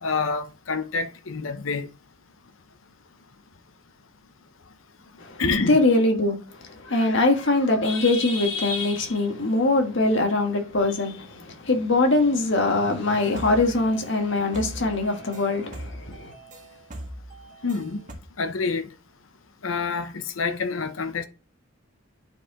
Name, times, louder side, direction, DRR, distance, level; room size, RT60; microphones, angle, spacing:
voice 1, 0.0-1.9 5.4-5.8 17.6-18.0 18.4-18.9 19.6-21.3, left 4 dB, 85° left, 0.8 m, -27 dB
voice 2, 5.2-16.3, left 2 dB, 65° left, 1.6 m, -22 dB
sound 1, 13.0-18.1, right 1 dB, 40° right, 1.8 m, -40 dB
8.8 x 4.8 x 3.7 m
head